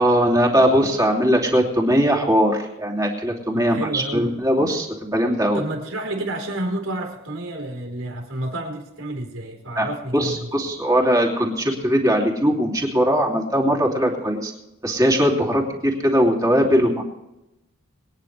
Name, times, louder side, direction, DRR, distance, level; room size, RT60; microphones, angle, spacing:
voice 1, 0.0-5.6 9.7-9.9 10.1-14.5 14.8-17.0, equal, 15° right, -1 dB, 2.8 m, -20 dB
voice 2, 3.5-4.4 5.5-10.5, right 1 dB, 75° right, 2 dB, 4.1 m, -30 dB
24.5 x 10.0 x 3.3 m, 0.93 s
head